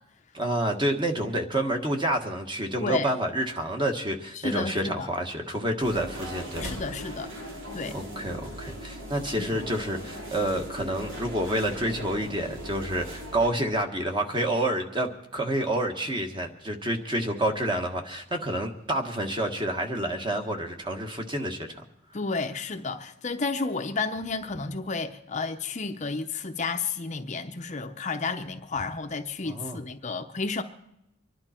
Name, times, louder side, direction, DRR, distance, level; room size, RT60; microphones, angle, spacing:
voice 1, 0.3-6.8 7.9-21.8 29.4-29.8, right 1 dB, 25° right, 1.5 m, -29 dB
voice 2, 2.8-3.1 4.4-5.1 6.6-7.3 7.7-7.9 9.4-9.5 22.1-30.6, left 4 dB, 35° left, 0.7 m, -31 dB
sound 1, 5.8-13.5, right 1 dB, 70° right, 3.2 m, -39 dB
25.0 x 11.0 x 4.4 m
head